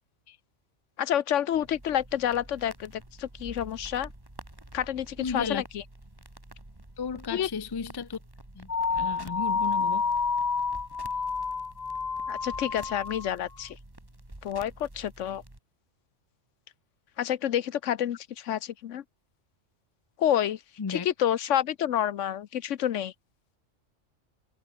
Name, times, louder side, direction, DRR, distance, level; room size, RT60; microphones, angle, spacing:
voice 1, 1.0-4.1 4.7-5.8 7.3-7.5 12.3-13.8 14.4-15.4 17.2-19.0 20.2-20.6 20.9-23.1, left 10 dB, 75° left, 1.1 m, -29 dB
sound 1, 1.5-15.6, right 1 dB, 20° right, 2.7 m, -49 dB
voice 2, 5.2-5.6 7.0-8.2 8.5-10.1 20.8-21.1, left 5 dB, 30° left, 0.5 m, -34 dB
sound 2, 8.7-13.3, left 5 dB, 55° left, 1.8 m, -29 dB
omnidirectional pair, 1.3 m